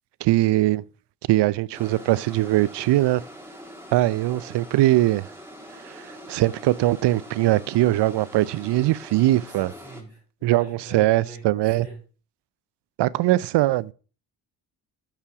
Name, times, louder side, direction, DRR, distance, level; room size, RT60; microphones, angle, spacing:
voice 1, 0.2-0.8 1.3-3.2 3.9-5.3 5.8-9.7 10.4-11.9 13.0-13.9, right 16 dB, 60° right, 0.5 m, -21 dB
sound 1, 1.7-10.0, equal, 5° right, 2.1 m, -43 dB
voice 2, 9.4-12.0, right 3 dB, 85° left, 2.6 m, -43 dB
6.9 x 5.6 x 4.9 m
hypercardioid pair, 40°, 46 cm